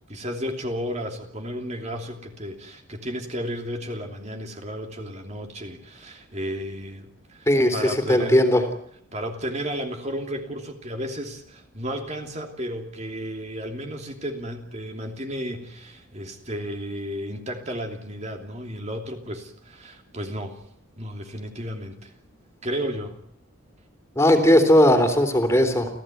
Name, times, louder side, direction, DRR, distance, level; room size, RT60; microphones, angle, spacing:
voice 1, 0.1-8.4 9.1-20.6 21.0-22.1 22.6-23.1, equal, 30° right, 4 dB, 3.0 m, -33 dB
voice 2, 7.5-8.6 24.1-25.9, left 1 dB, 15° left, 7 dB, 3.5 m, -18 dB
29.0 x 15.5 x 9.3 m, 0.70 s
head